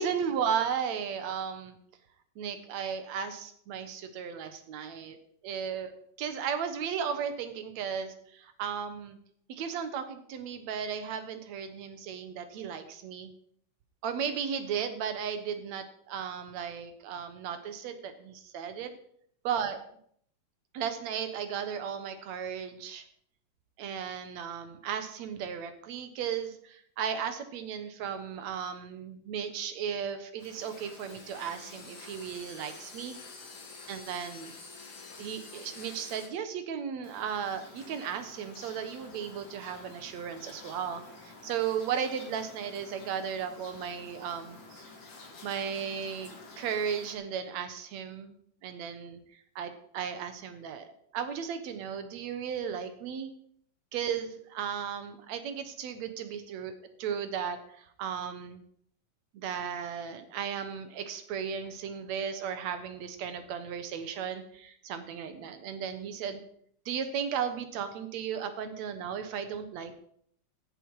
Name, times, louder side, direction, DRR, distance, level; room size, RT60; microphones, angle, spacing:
voice 1, 0.0-1.8 2.4-5.2 5.4-9.2 9.5-13.3 14.0-19.0 19.4-19.8 20.7-23.0 23.8-33.2 33.9-34.5 35.2-44.8 45.4-48.3 48.6-49.2 49.6-53.3 53.9-56.7 57.0-58.6 59.3-66.4 66.9-69.9, right 7 dB, 70° right, 9 dB, 2.4 m, -35 dB
sound 1, 30.4-36.3 37.0-47.1, left 3 dB, 45° left, 2.4 m, -49 dB
15.5 x 7.7 x 4.8 m, 0.65 s
omnidirectional pair, 3.4 m